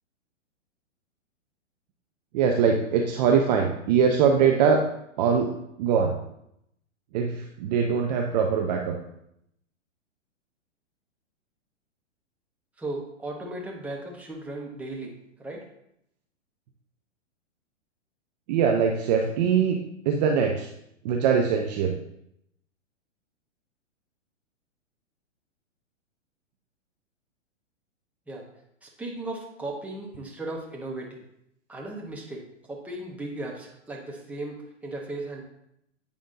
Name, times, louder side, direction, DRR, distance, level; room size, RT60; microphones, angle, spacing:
voice 1, 2.3-4.8 5.2-5.5 5.8-6.2 7.1-9.0 18.5-20.7 21.0-22.0, right 6 dB, 35° right, 3 dB, 0.5 m, -22 dB
voice 2, 12.8-15.1 15.4-15.6 28.3-28.5 28.8-31.2 31.7-32.4 32.7-35.4, right 2 dB, 5° right, -2 dB, 0.8 m, -36 dB
8.1 x 5.0 x 2.6 m, 0.76 s
hypercardioid pair, 130°, 37 cm